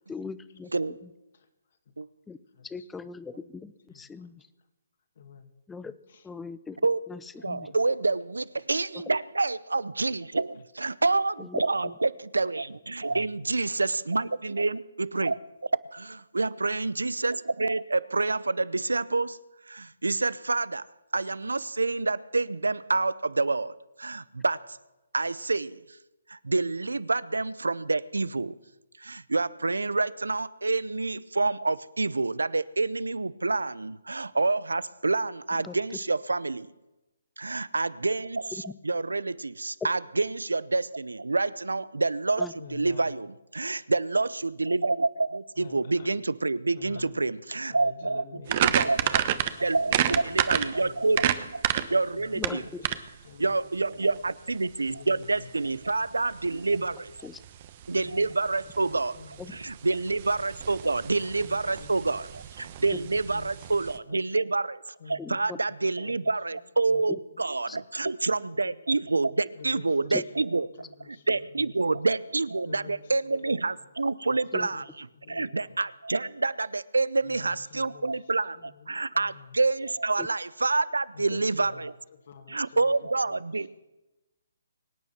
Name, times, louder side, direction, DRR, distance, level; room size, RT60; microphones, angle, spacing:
voice 1, 0.1-0.7 2.3-2.4 2.6-4.4 5.7-5.9 6.2-6.8 7.1-7.7 11.4-11.9 35.6-35.8 42.4-42.5 52.4-52.8 57.2-57.4 59.4-59.5 65.2-65.6 67.7-67.8 70.1-70.2 74.5-74.7 80.2-80.3, left 5 dB, 10° left, 15 dB, 0.7 m, -39 dB
voice 2, 2.5-2.9 3.9-4.3 5.2-5.5 6.1-6.3 7.4-7.8 13.1-13.3 42.6-43.1 45.6-46.2 46.7-47.2 47.7-50.4 50.6-51.2 51.8-53.6 53.9-54.0 54.9-56.0 56.7-56.9 58.0-59.7 61.1-62.0 62.8-63.7 64.1-64.2 65.0-65.4 65.7-65.8 66.0-66.3 66.9-67.0 67.3-68.1 68.4-68.7 69.6-72.0 72.6-73.0 73.3-73.9 74.3-74.8 75.1-75.8 77.2-78.1 78.5-79.5 81.1-81.9 82.2-83.4, left 5 dB, 55° left, 6 dB, 2.5 m, -49 dB
voice 3, 7.4-15.4 15.9-19.4 19.7-20.9 21.1-24.8 25.1-25.8 26.3-28.5 29.0-36.7 37.4-49.0 49.6-52.7 53.4-57.1 57.9-64.8 65.1-70.7 71.1-81.9 82.5-83.7, right 3 dB, 85° right, 20 dB, 0.6 m, -28 dB
sound 1, 48.5-64.0, right 11 dB, 40° right, 1.1 m, -31 dB
24.0 x 9.4 x 6.0 m, 1.0 s
figure-of-eight pair, 145°, 0 cm